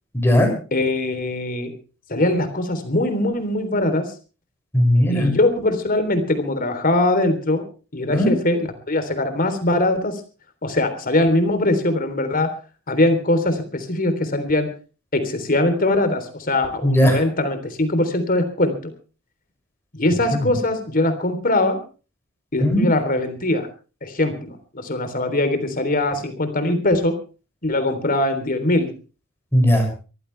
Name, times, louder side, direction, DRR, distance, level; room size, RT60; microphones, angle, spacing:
voice 1, 0.1-0.5 4.7-5.3 8.1-8.3 16.8-17.2 20.3-20.4 22.6-22.9 29.5-29.9, equal, 10° left, 3 dB, 6.8 m, -17 dB
voice 2, 0.7-1.7 2.1-4.1 5.1-7.6 7.9-8.6 8.9-10.2 10.6-12.5 12.9-14.7 15.1-18.8 19.9-21.8 22.5-23.7 24.0-27.2 27.6-28.9, left 2 dB, 45° left, 9 dB, 3.6 m, -21 dB
23.5 x 15.0 x 3.4 m, 0.35 s
head